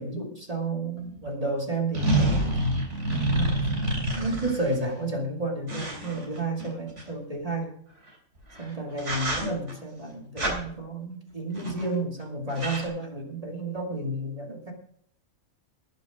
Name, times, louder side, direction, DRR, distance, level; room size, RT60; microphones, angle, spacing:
voice 1, 0.0-2.6 3.3-3.8 4.1-7.7 8.6-14.7, right 2 dB, 25° right, 0 dB, 2.4 m, -31 dB
sound 1, 1.0-1.1 1.9-4.8 5.7-7.0 8.4-8.6 9.0-9.7 10.4-10.6 11.5-11.9 12.2-12.3 12.5-12.9, right 1 dB, 60° right, 3.8 m, -27 dB
19.5 x 6.6 x 5.1 m, 0.64 s
omnidirectional pair, 1.4 m